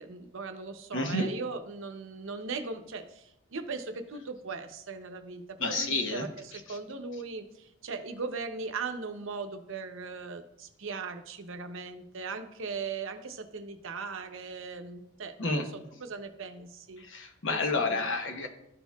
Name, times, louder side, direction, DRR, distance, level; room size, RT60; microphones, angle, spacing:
voice 1, 0.0-17.0 17.5-17.6 17.9-18.1, right 4 dB, 65° right, 7 dB, 0.7 m, -39 dB
voice 2, 0.9-1.3 5.6-6.2 15.4-15.6 17.1-18.5, left 2 dB, 60° left, 4 dB, 0.9 m, -29 dB
12.5 x 4.5 x 2.3 m, 0.79 s
head